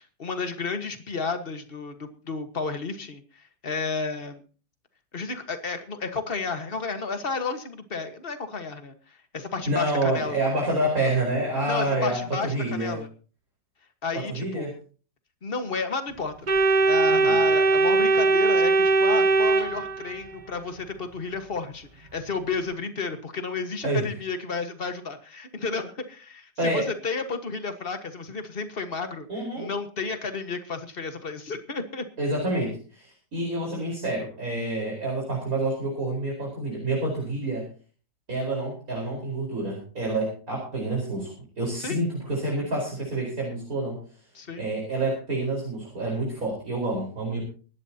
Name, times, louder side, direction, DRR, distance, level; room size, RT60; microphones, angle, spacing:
voice 1, 0.0-4.4 5.1-10.5 11.6-13.1 14.0-14.7 15.4-16.5 16.9-29.3 29.6-32.1 41.8-42.0 44.3-44.6, left 4 dB, 35° left, 8 dB, 1.7 m, -32 dB
voice 2, 9.7-13.0 14.1-14.7 17.1-17.4 23.8-24.2 26.6-26.9 29.3-29.7 32.2-37.7 38.3-44.0 44.6-47.4, right 1 dB, 50° right, -2 dB, 5.1 m, -28 dB
Organ, 16.5-20.4, right 3 dB, 35° right, 0.8 m, -20 dB
25.0 x 12.0 x 2.9 m, 0.38 s
omnidirectional pair, 1.9 m